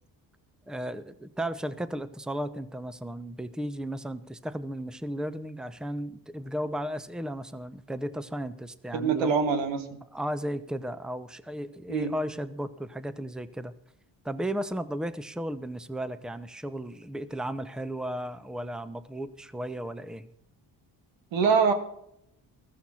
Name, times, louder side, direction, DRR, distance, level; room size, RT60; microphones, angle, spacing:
voice 1, 0.7-9.3 10.1-13.7 14.2-20.3, right 1 dB, ahead, 13 dB, 0.9 m, -35 dB
voice 2, 8.9-9.9 11.9-12.1 21.3-21.7, right 5 dB, 90° right, 7 dB, 1.9 m, -24 dB
14.5 x 14.5 x 4.3 m, 0.75 s
cardioid pair, 70°, 44 cm